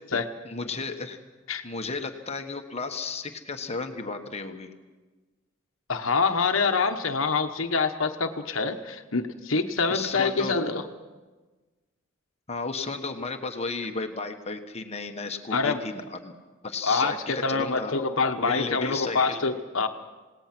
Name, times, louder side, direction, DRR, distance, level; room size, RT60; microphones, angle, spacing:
voice 1, 0.4-1.2 1.6-4.7 9.9-10.6 12.5-16.3 16.6-18.0 18.4-19.4, left 4 dB, 30° left, 5 dB, 1.4 m, -33 dB
voice 2, 5.9-10.8 15.5-15.9 16.8-19.9, left 4 dB, 70° left, 6 dB, 1.2 m, -26 dB
27.5 x 18.5 x 6.1 m, 1.2 s
head